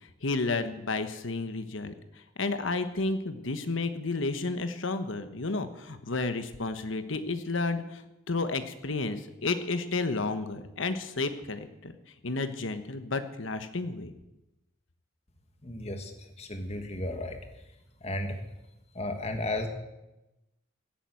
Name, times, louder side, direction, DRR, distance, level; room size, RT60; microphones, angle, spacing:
voice 1, 0.2-1.9 2.4-8.0 8.3-11.9 12.2-14.1, left 3 dB, 70° left, 10 dB, 1.2 m, -31 dB
voice 2, 15.6-16.1 16.4-17.4 18.0-18.4 18.9-19.7, left 1 dB, 30° left, 6 dB, 1.6 m, -33 dB
16.5 x 9.1 x 7.8 m, 0.97 s
head